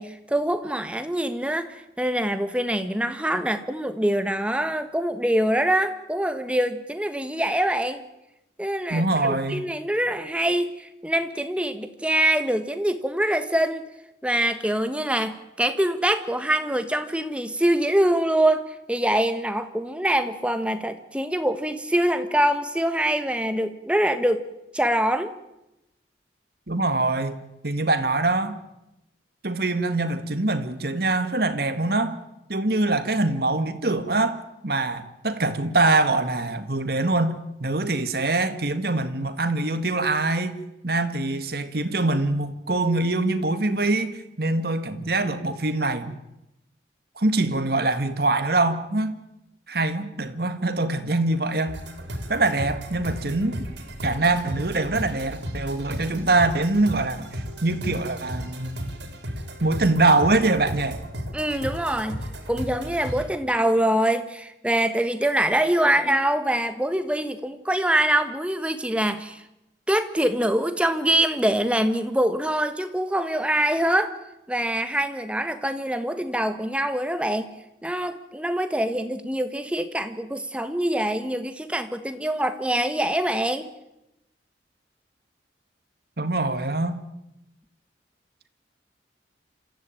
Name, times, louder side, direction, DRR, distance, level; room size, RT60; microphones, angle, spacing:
voice 1, 0.0-8.0 8.6-13.9 14.2-24.4 24.7-25.3 61.3-69.4 69.9-74.1 74.5-77.5 77.8-83.7, right 1 dB, 5° right, 9 dB, 1.3 m, -24 dB
voice 2, 8.9-9.6 26.7-28.6 29.4-32.2 32.5-40.6 40.8-46.2 47.2-49.1 49.7-51.8 52.3-53.5 54.0-58.9 59.6-61.0 86.2-87.0, right 2 dB, 55° right, 10 dB, 1.8 m, -24 dB
sound 1, 51.7-63.3, equal, 70° right, 4.1 m, -35 dB
27.0 x 14.5 x 9.0 m, 0.89 s
head